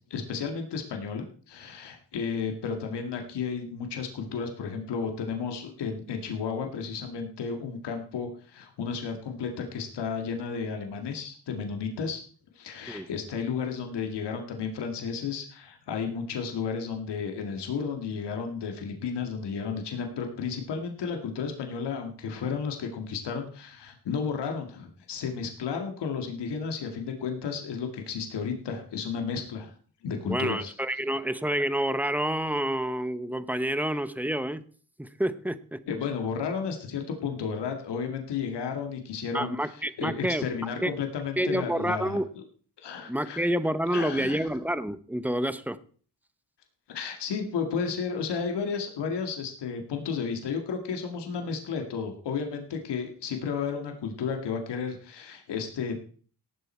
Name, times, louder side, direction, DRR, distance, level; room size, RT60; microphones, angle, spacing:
voice 1, 0.1-12.2 12.5-29.7 30.0-30.7 35.9-42.2 42.8-43.5 43.9-44.5 46.9-56.0, left 6 dB, 85° left, 4 dB, 2.1 m, -33 dB
voice 2, 30.3-34.6 35.0-35.8 39.3-40.5 40.8-40.9 41.4-42.3 43.1-45.8, right 1 dB, 5° right, 14 dB, 0.9 m, -28 dB
18.0 x 7.7 x 4.4 m, 0.43 s
cardioid pair, 80°, 40 cm